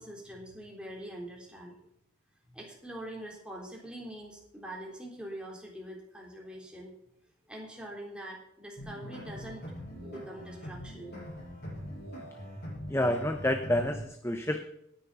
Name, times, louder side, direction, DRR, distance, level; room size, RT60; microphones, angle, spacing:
voice 1, 0.0-1.8 2.5-6.9 7.5-9.6 10.0-11.2, right 1 dB, 5° right, -2 dB, 3.7 m, -44 dB
sound 1, 8.8-14.1, equal, 50° left, 6.4 m, -42 dB
voice 2, 12.9-14.7, left 1 dB, 15° left, 6 dB, 0.8 m, -29 dB
18.5 x 9.9 x 4.2 m, 0.77 s
head